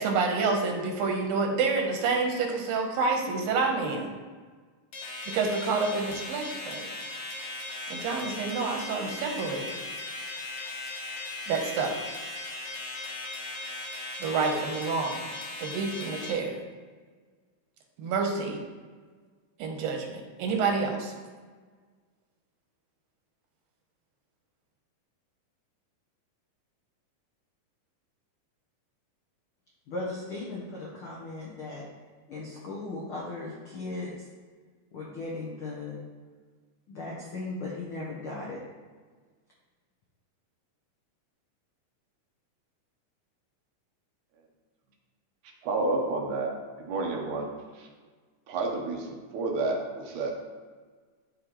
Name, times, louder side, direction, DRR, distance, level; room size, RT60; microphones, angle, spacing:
voice 1, 0.0-4.1 5.3-6.9 7.9-9.7 11.5-12.0 14.2-15.2 15.6-16.6 18.0-18.6 19.6-21.1, right 4 dB, 85° right, 2 dB, 2.7 m, -28 dB
sound 1, 4.9-16.3, left 2 dB, 55° left, 2.0 m, -38 dB
voice 2, 29.9-31.8 32.3-34.2 34.9-36.0 36.9-38.6, left 2 dB, 75° left, -4 dB, 1.2 m, -37 dB
voice 3, 45.6-46.5 46.8-47.5 47.7-47.9 48.5-50.3, right 3 dB, 70° right, 0 dB, 2.2 m, -30 dB
12.0 x 4.1 x 3.0 m, 1.5 s
omnidirectional pair, 3.9 m